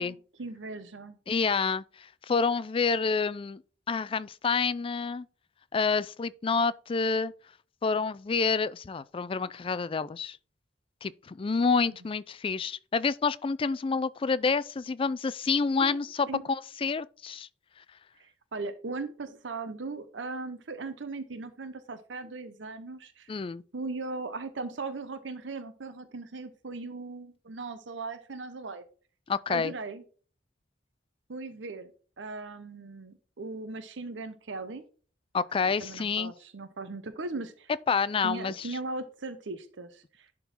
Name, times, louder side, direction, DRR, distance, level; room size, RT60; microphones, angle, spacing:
voice 1, 0.0-1.2 11.9-12.0 15.8-16.4 18.2-23.4 23.7-28.8 29.5-30.0 31.3-31.9 32.2-34.8 35.6-37.7 38.2-40.3, right 3 dB, 80° right, 0.8 m, -38 dB
voice 2, 1.3-1.8 2.3-3.6 3.9-5.3 5.7-7.3 7.8-10.4 11.0-17.5 23.3-23.6 29.3-29.7 35.3-36.3 37.9-38.5, left 5 dB, 30° left, 0.3 m, -28 dB
11.0 x 3.8 x 4.3 m
head